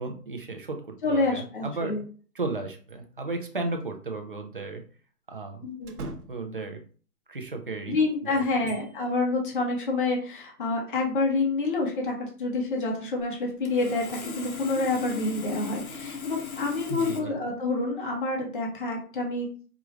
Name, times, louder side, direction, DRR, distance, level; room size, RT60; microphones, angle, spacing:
voice 1, 0.0-1.9 2.4-4.8 5.3-5.7 6.3-6.8 7.3-8.0 8.2-8.7 16.9-17.3, right 3 dB, 35° right, 4 dB, 0.4 m, -34 dB
voice 2, 1.0-2.0 5.6-6.0 7.9-19.5, left 3 dB, 30° left, 0 dB, 0.9 m, -28 dB
sound 1, 2.9-3.5 3.8-3.9 5.8-6.7 8.2-9.2, right 2 dB, 70° right, 0.9 m, -42 dB
Bicycle bell, 8.6-9.3, equal, 5° right, 0.7 m, -50 dB
Sawing, 13.2-13.3 13.7-17.2, left 5 dB, 60° left, 1.0 m, -38 dB
4.8 x 2.4 x 2.9 m, 0.41 s
hypercardioid pair, 155°, 48 cm